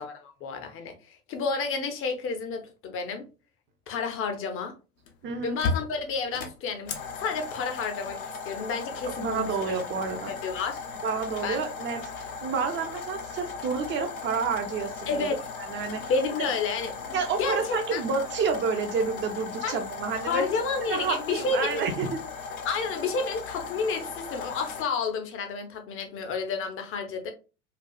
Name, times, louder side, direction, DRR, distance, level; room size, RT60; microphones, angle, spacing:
voice 1, 0.0-3.3 3.9-4.8 5.4-9.5 10.3-10.8 11.4-11.6 15.1-15.4 16.1-18.0 19.6-19.8 20.2-21.8 22.6-27.3, left 4 dB, 30° left, 0.7 m, -30 dB
sound 1, 5.1-5.2 5.6-24.8, left 4 dB, 65° left, 0.9 m, -37 dB
voice 2, 5.2-5.6 9.2-10.3 11.0-15.3 15.7-16.1 16.4-16.5 17.1-20.4 20.9-22.2, right 5 dB, 25° right, 0.6 m, -29 dB
4.3 x 2.3 x 2.3 m
figure-of-eight pair, 80°, 46 cm